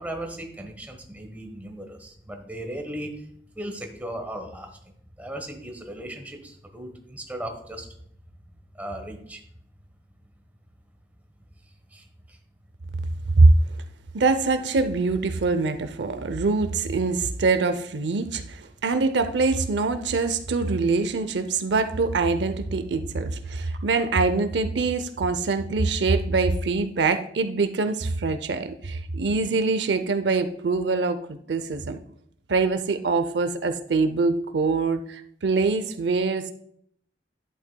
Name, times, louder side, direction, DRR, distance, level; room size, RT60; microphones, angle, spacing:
voice 1, 0.0-3.3 3.5-4.8 5.2-7.9 8.7-9.4 11.9-12.4, right 1 dB, 10° right, 4 dB, 1.1 m, -37 dB
voice 2, 14.1-32.0 32.5-36.5, right 3 dB, 80° right, 10 dB, 0.5 m, -24 dB
11.0 x 8.2 x 2.2 m, 0.67 s
head